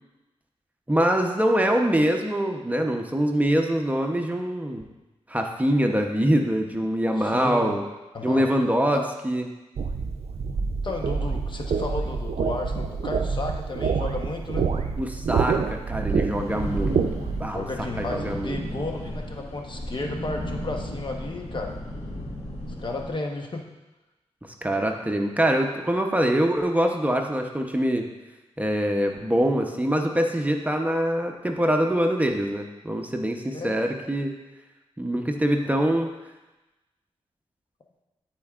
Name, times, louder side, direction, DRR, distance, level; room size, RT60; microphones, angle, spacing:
voice 1, 0.9-4.9 5.3-7.8 8.2-9.5 15.0-17.0 17.4-17.7 18.0-18.6 24.4-28.1 28.6-34.3 35.0-36.1, equal, 15° right, 3 dB, 0.8 m, -24 dB
voice 2, 7.2-7.8 8.1-8.4 8.9-9.0 10.8-14.7 17.5-21.8 22.8-23.6 33.5-33.7, left 2 dB, 45° left, 2 dB, 1.0 m, -33 dB
sound 1, 9.8-17.5, right 5 dB, 70° right, 0.5 m, -27 dB
sound 2, 16.3-23.1, equal, 65° left, 1.6 m, -35 dB
12.0 x 4.5 x 2.4 m, 1.1 s
cardioid pair, 60°, 11 cm